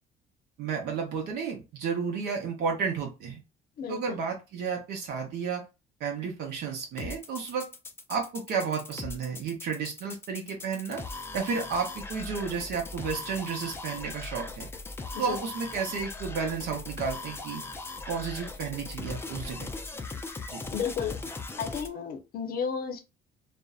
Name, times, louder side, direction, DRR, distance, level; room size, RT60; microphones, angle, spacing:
voice 1, 0.6-3.4 3.9-5.6 6.0-7.7 8.1-11.0 11.3-14.7 15.2-17.6 18.1-19.7 20.5-20.6, right 6 dB, 70° right, 0.7 m, -32 dB
voice 2, 3.8-4.2 15.1-15.4 20.7-21.2 21.6-23.0, left 7 dB, 60° left, 0.6 m, -33 dB
sound 1, 7.0-21.9, left 3 dB, 15° left, 0.3 m, -39 dB
2.5 x 2.1 x 2.3 m
cardioid pair, 110°, 17 cm